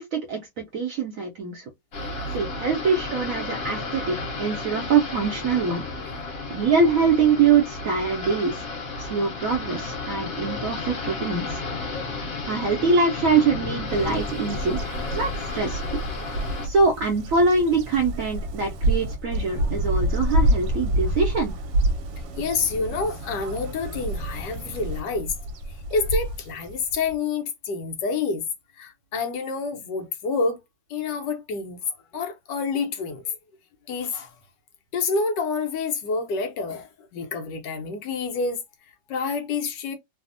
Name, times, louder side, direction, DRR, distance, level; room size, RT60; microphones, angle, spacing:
voice 1, 0.0-1.7 2.3-5.8 6.5-8.6 9.0-11.6 12.5-16.0 16.6-21.5, right 4 dB, 70° right, 0.8 m, -24 dB
sound 1, 1.9-16.7, left 3 dB, 55° left, 1.5 m, -33 dB
Bird vocalization bird call bird song, 13.9-27.1, right 1 dB, 85° right, 1.3 m, -28 dB
voice 2, 22.4-25.3 25.7-28.5 28.7-30.6 30.9-33.4 33.9-34.3 34.9-38.6 39.1-39.9, left 4 dB, 75° left, 1.3 m, -28 dB
3.3 x 2.0 x 2.5 m
omnidirectional pair, 1.9 m